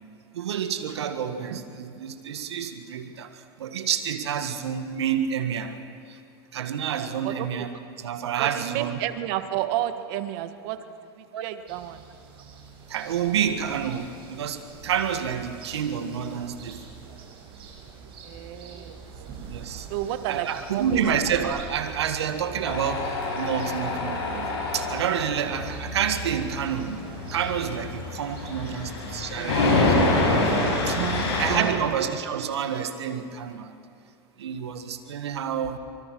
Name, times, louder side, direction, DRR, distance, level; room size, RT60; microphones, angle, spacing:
voice 1, 0.3-5.8 6.1-6.2 6.5-9.0 11.3-11.4 12.9-16.8 19.5-19.9 20.3-24.5 24.7-27.0 27.3-33.7 34.4-35.8, right 8 dB, 90° right, 8 dB, 1.7 m, -29 dB
voice 2, 8.4-10.8 11.2-12.0 18.2-19.0 19.3-19.4 19.9-21.0 29.0-29.5 30.9-32.0, right 13 dB, 60° right, 10 dB, 1.6 m, -31 dB
sound 1, 11.7-28.8, right 4 dB, 40° right, 6.0 m, -43 dB
Tools, 22.7-31.6, left 2 dB, 80° left, 7.8 m, -27 dB
25.0 x 24.0 x 6.2 m, 2.5 s
hypercardioid pair, 110°, 14 cm